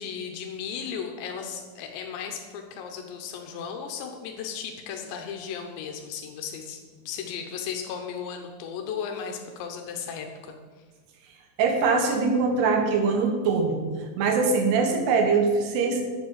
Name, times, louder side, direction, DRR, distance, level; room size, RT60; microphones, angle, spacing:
voice 1, 0.0-10.6, left 7 dB, 90° left, 3 dB, 3.2 m, -35 dB
voice 2, 11.6-13.8 14.2-16.1, right 4 dB, 75° right, 4 dB, 3.5 m, -22 dB
10.5 x 7.2 x 7.4 m, 1.5 s
omnidirectional pair, 5.0 m